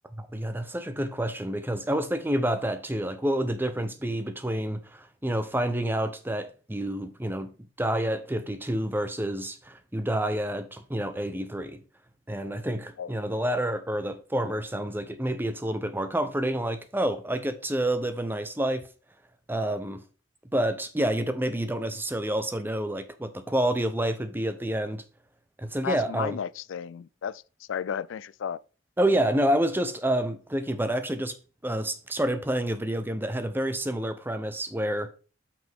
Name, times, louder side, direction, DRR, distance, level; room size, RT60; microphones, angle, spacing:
voice 1, 0.2-11.8 12.3-18.9 19.5-20.0 20.5-25.0 25.6-26.4 29.0-31.3 31.6-35.1, right 1 dB, 10° right, 0.8 m, -28 dB
voice 2, 25.8-27.4 27.7-28.6, left 7 dB, 85° left, 0.4 m, -33 dB
7.9 x 5.9 x 3.6 m
head